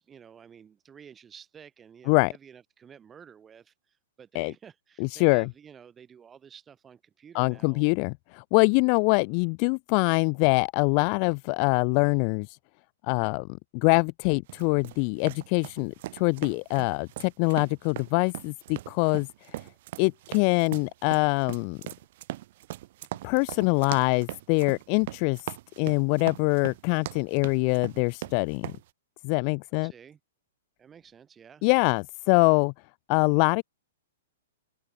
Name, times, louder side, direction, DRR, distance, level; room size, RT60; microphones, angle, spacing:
voice 1, 0.0-7.9 29.7-30.2 30.8-31.7, right 7 dB, 20° right, 5.6 m, -51 dB
voice 2, 5.0-5.5 7.3-12.6 13.1-13.5 13.7-19.3 20.0-21.8 23.2-25.4 25.8-28.6 29.2-29.9 31.6-32.7 33.1-33.6, left 40 dB or more, 40° left, 0.5 m, -24 dB
sound 1, 14.5-28.8, right 16 dB, 55° right, 1.6 m, -40 dB
open air
hypercardioid pair, 115°, 0 cm